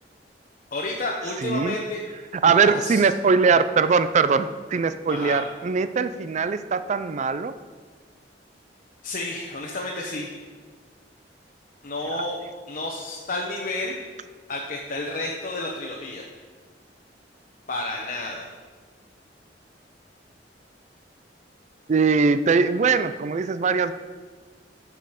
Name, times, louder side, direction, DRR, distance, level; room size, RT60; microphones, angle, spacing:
voice 1, 0.7-2.0 2.5-3.0 5.1-5.4 9.0-10.4 11.8-12.4 12.7-14.0 14.5-16.2 17.7-18.5, left 2 dB, 50° left, -1 dB, 1.0 m, -31 dB
voice 2, 1.4-1.8 2.4-7.5 12.1-12.3 21.9-23.9, right 5 dB, 40° right, 12 dB, 0.4 m, -21 dB
9.7 x 5.3 x 6.5 m, 1.5 s
head